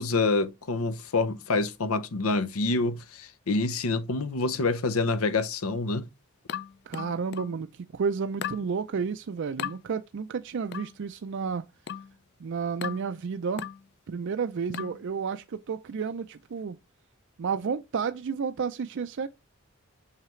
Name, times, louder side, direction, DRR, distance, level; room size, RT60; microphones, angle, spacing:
voice 1, 0.0-6.1, left 3 dB, 85° left, 0.8 m, -27 dB
sound 1, 6.5-7.6 8.4-8.7 9.6-9.8 10.7-11.0 11.9-12.2 12.8-13.1 13.6-13.9 14.7-15.0, left 9 dB, 50° left, 0.4 m, -36 dB
voice 2, 6.9-11.7 12.4-13.6 14.1-16.8 17.4-19.3, right 5 dB, 60° right, 0.4 m, -31 dB
5.9 x 5.6 x 3.1 m
head